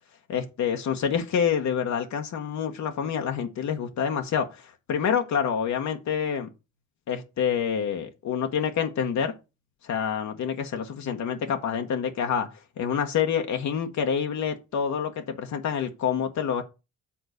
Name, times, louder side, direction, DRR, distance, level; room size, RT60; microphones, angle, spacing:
voice 1, 0.3-6.5 7.1-9.3 9.8-12.5 12.8-16.6, left 7 dB, 65° left, 1.1 m, -27 dB
7.1 x 3.9 x 6.4 m
cardioid pair, 90°, 30 cm